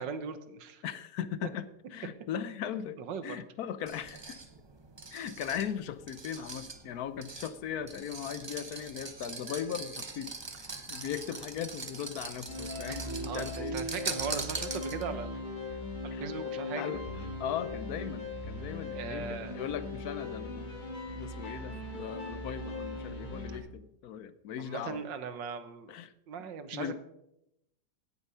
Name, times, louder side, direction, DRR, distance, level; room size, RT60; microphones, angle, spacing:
voice 1, 0.0-0.8 3.0-3.4 12.9-13.0 13.3-15.4 16.2-17.0 18.9-19.6 24.6-25.9 26.3-26.9, right 6 dB, 80° right, 11 dB, 1.7 m, -38 dB
voice 2, 0.8-3.0 3.2-4.4 5.1-10.3 10.6-13.8 16.1-16.2 16.8-20.7 21.1-25.0 25.9-26.1 26.7-26.9, left 9 dB, 65° left, 14 dB, 1.0 m, -38 dB
sound 1, 3.9-15.2, right 3 dB, 30° right, 0.4 m, -42 dB
sound 2, 12.5-23.6, left 2 dB, 25° left, 2.5 m, -39 dB
17.0 x 7.0 x 5.6 m, 0.84 s
omnidirectional pair, 1.9 m